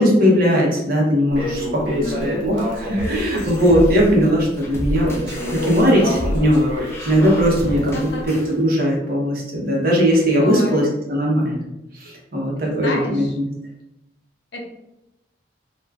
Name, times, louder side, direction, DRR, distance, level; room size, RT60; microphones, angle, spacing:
voice 1, 0.0-5.1 5.5-11.6 11.9-13.4, equal, 50° right, -2 dB, 0.8 m, -19 dB
Crackle, 1.3-8.3, left 1 dB, 80° right, 0.9 m, -29 dB
voice 2, 1.9-2.3 7.5-8.2 10.4-10.9 12.7-13.4 14.5-14.6, left 2 dB, 65° left, 0 dB, 0.6 m, -30 dB
sound 1, 3.0-8.5, equal, 15° left, 0.5 m, -30 dB
2.4 x 2.3 x 3.3 m, 0.90 s
head